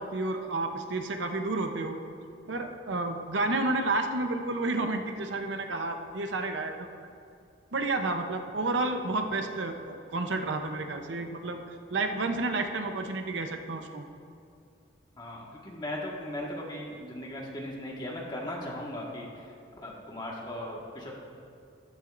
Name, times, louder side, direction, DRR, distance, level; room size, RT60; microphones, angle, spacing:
voice 1, 0.0-2.0 2.5-7.0 7.7-14.1, right 2 dB, 75° right, 5 dB, 0.7 m, -31 dB
voice 2, 15.2-19.5 19.8-21.1, left 1 dB, 25° left, -3 dB, 1.6 m, -38 dB
14.5 x 11.5 x 2.6 m, 2.4 s
head